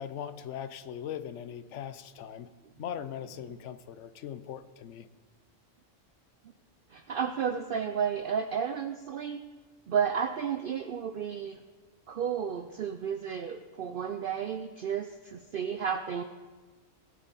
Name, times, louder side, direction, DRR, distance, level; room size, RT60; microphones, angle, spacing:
voice 1, 0.0-2.5 2.8-5.1, left 9 dB, 70° left, 13 dB, 1.0 m, -40 dB
voice 2, 6.9-9.4 9.9-11.6 12.1-16.2, right 7 dB, 60° right, 9 dB, 0.6 m, -32 dB
18.5 x 7.3 x 4.1 m, 1.4 s
omnidirectional pair, 1.3 m